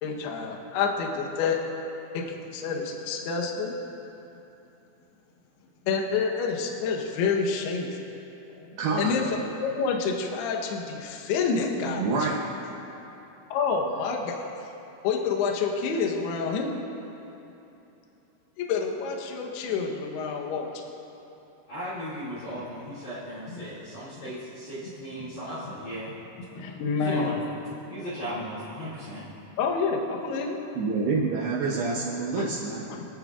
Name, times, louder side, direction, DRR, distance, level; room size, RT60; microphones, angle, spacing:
voice 1, 0.0-1.6 2.1-3.8 5.9-7.9 8.6-12.3 13.5-14.5 15.0-16.7 18.6-20.7 25.2-25.3 26.5-27.3 29.6-30.6 32.4-32.5 32.9-33.1, left 5 dB, 75° left, 0 dB, 2.5 m, -28 dB
voice 2, 8.8-9.2 11.8-12.4 30.7-32.8, right 4 dB, 80° right, -4 dB, 2.3 m, -27 dB
voice 3, 21.7-26.1 26.9-27.3 27.9-29.2, equal, 45° left, -12 dB, 2.8 m, -36 dB
26.5 x 8.9 x 2.4 m, 3.0 s
omnidirectional pair, 5.8 m